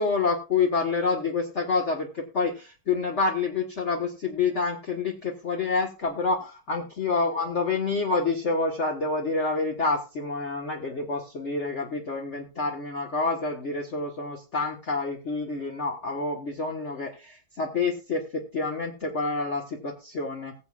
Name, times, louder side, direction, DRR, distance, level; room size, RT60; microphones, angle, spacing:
voice 1, 0.0-20.5, left 4 dB, 40° left, 1 dB, 1.5 m, -28 dB
20.0 x 8.0 x 2.4 m, 0.32 s
omnidirectional pair, 2.2 m